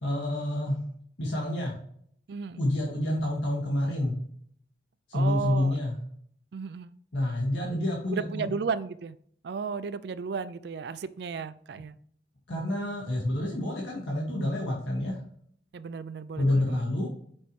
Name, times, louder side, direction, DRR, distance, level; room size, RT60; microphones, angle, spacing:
voice 1, 0.0-0.8 1.2-1.7 2.6-4.2 5.1-5.9 7.1-8.5 12.5-15.2 16.4-17.1, left 1 dB, 80° left, 1.9 m, -28 dB
voice 2, 2.3-2.6 5.1-5.8 6.5-6.9 7.6-7.8 8.1-9.2 9.4-12.0 15.7-16.8, right 5 dB, 60° right, 0.3 m, -34 dB
6.1 x 5.4 x 3.1 m
head